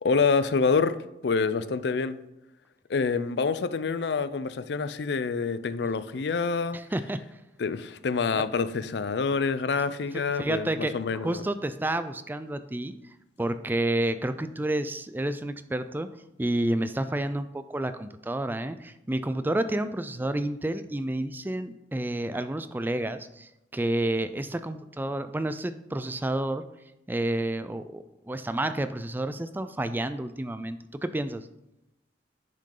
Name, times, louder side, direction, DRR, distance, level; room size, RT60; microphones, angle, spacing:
voice 1, 0.0-1.0 1.2-2.2 2.9-6.8 7.6-11.4, left 4 dB, 65° left, 0.5 m, -27 dB
voice 2, 6.7-7.2 10.1-12.9 13.4-16.1 16.4-26.6 27.1-31.5, right 1 dB, 10° right, 0.4 m, -30 dB
10.0 x 6.5 x 3.8 m
head